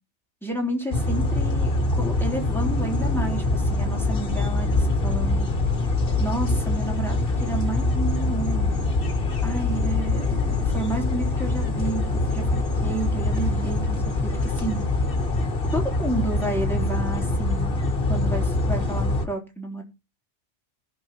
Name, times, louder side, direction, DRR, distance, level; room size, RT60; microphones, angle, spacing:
voice 1, 0.4-5.5 6.2-8.9 9.4-14.8 15.7-17.8 18.1-19.8, right 2 dB, ahead, 0 dB, 3.3 m, -31 dB
sound 1, 0.9-19.3, left 2 dB, 50° left, 1.5 m, -24 dB
19.5 x 6.8 x 3.0 m, 0.27 s
omnidirectional pair, 1.2 m